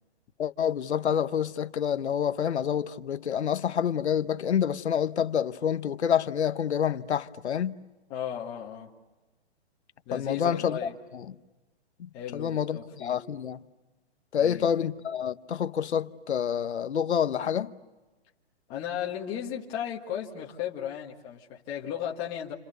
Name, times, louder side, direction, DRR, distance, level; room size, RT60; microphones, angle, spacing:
voice 1, 0.4-7.8 10.1-11.2 12.3-13.6 14.3-17.7, left 8 dB, 80° left, 1.2 m, -28 dB
voice 2, 8.1-8.9 10.1-10.9 12.1-13.2 14.4-14.7 18.7-22.5, left 9 dB, 15° left, 1.7 m, -35 dB
29.5 x 29.5 x 6.8 m
hypercardioid pair, 175°, 33 cm